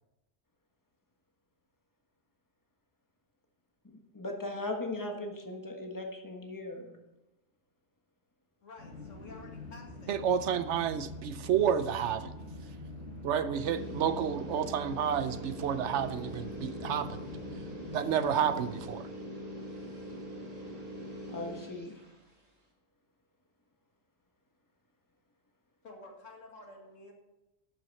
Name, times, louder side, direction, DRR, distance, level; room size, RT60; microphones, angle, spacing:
voice 1, 3.8-7.0 21.3-22.0, left 2 dB, 15° left, 2 dB, 1.3 m, -38 dB
voice 2, 8.6-10.2 25.8-27.1, left 2 dB, 80° left, 1 dB, 2.3 m, -51 dB
sound 1, 8.8-18.8, left 2 dB, 50° right, 5.1 m, -45 dB
voice 3, 10.1-12.3 12.6-12.8 13.2-17.2 17.9-19.1, right 8 dB, 70° right, 12 dB, 0.9 m, -30 dB
sound 2, 13.5-22.3, equal, 30° right, 2.1 m, -43 dB
12.0 x 8.9 x 4.1 m, 0.99 s
omnidirectional pair, 1.3 m